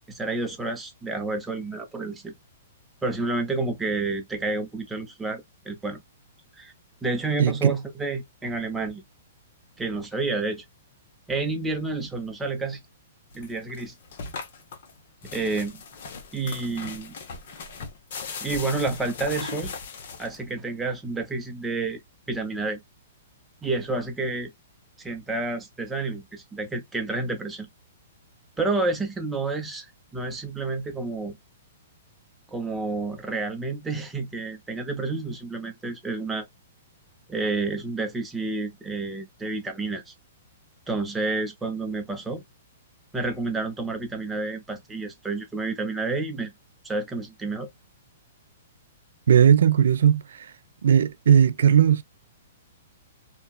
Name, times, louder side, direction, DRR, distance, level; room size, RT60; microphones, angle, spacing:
voice 1, 0.1-2.3 3.0-6.0 6.6-6.7 7.0-9.0 9.8-10.7 11.3-12.8 13.3-13.9 15.3-15.8 16.3-17.1 18.4-19.7 20.2-22.0 22.3-22.8 23.6-24.5 25.0-27.7 28.6-29.9 30.1-31.4 32.5-36.5 37.3-40.1 40.9-42.4 43.1-46.5 46.8-47.7, right 3 dB, 10° right, 0.7 m, -29 dB
voice 2, 7.4-7.7 49.3-50.5 50.8-52.0, right 8 dB, 75° right, 0.3 m, -18 dB
sound 1, 13.3-20.6, left 5 dB, 60° left, 0.8 m, -38 dB
2.8 x 2.3 x 2.3 m
hypercardioid pair, 145°, 0 cm